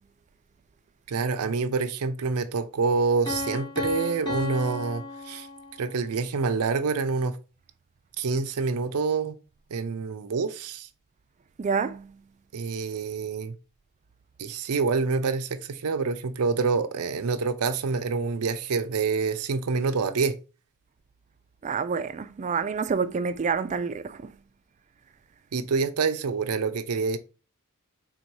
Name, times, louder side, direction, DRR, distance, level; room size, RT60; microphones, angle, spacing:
voice 1, 1.1-5.5 5.8-7.4 8.2-9.3 9.7-10.9 12.5-13.5 14.4-20.4 25.5-27.2, right 4 dB, 85° right, 0.5 m, -27 dB
Piano, 3.3-6.0, left 2 dB, 20° left, 1.1 m, -34 dB
voice 2, 11.6-12.1 21.6-24.2, right 5 dB, 35° right, 0.3 m, -28 dB
3.6 x 2.7 x 4.6 m
head